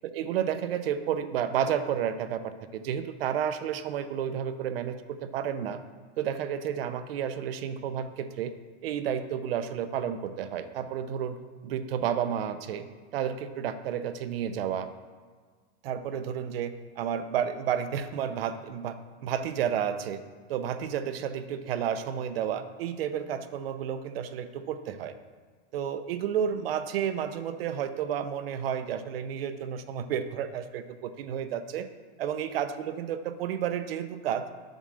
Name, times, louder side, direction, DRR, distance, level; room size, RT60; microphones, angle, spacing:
voice 1, 0.0-5.8 6.2-8.5 8.8-11.4 11.6-12.8 13.1-14.9 15.8-19.0 19.2-20.2 20.5-25.1 25.7-31.9 32.2-34.5, right 9 dB, 55° right, 11 dB, 0.7 m, -31 dB
9.1 x 6.2 x 6.4 m, 1.5 s
supercardioid pair, 175°, 34 cm